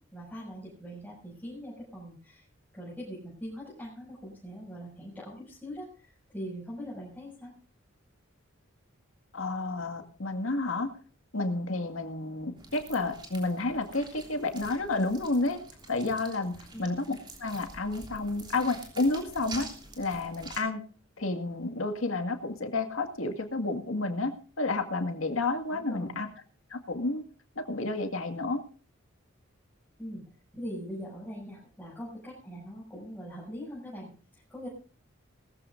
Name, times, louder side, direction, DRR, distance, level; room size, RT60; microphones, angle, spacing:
voice 1, 0.1-2.4 2.7-7.5 16.7-16.9 25.7-26.2 30.0-30.2 30.5-34.7, equal, 10° left, -8 dB, 6.5 m, -42 dB
voice 2, 9.3-10.9 11.3-15.6 15.9-19.7 20.0-20.8 21.2-26.3 26.7-27.2 27.6-28.6, left 2 dB, 80° left, 6 dB, 2.0 m, -30 dB
sound 1, 12.6-20.6, right 3 dB, 20° right, 3.3 m, -47 dB
20.5 x 14.0 x 2.6 m, 0.39 s
head